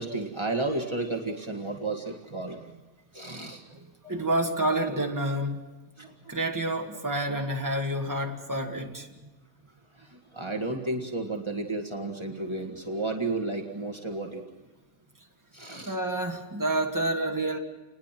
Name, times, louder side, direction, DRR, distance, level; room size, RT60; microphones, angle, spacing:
voice 1, 0.0-2.8 3.1-4.1 6.0-6.4 9.2-9.3 9.6-14.5 15.5-16.0, right 2 dB, 40° right, 2 dB, 0.4 m, -33 dB
voice 2, 4.1-5.6 6.3-9.1 15.8-17.6, right 1 dB, 10° right, 2 dB, 1.0 m, -28 dB
29.0 x 20.5 x 6.0 m, 1.2 s
omnidirectional pair, 3.9 m